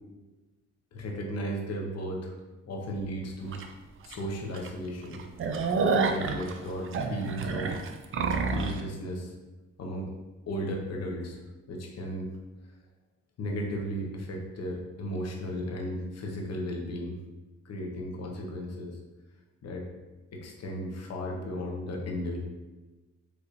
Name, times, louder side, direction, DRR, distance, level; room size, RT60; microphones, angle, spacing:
voice 1, 0.9-2.3 2.6-3.6 4.0-5.2 6.1-7.8 8.5-9.3 9.8-10.1 10.5-11.4 11.7-12.3 13.4-17.2 17.6-19.0 19.6-19.8 20.3-22.4, equal, 55° left, 0 dB, 1.0 m, -35 dB
sound 1, 3.5-3.6 4.1-4.2 4.5-4.7 5.0-8.8, right 4 dB, 45° right, 0.5 m, -28 dB
4.9 x 3.1 x 2.6 m, 1.1 s
cardioid pair, 90°, 30 cm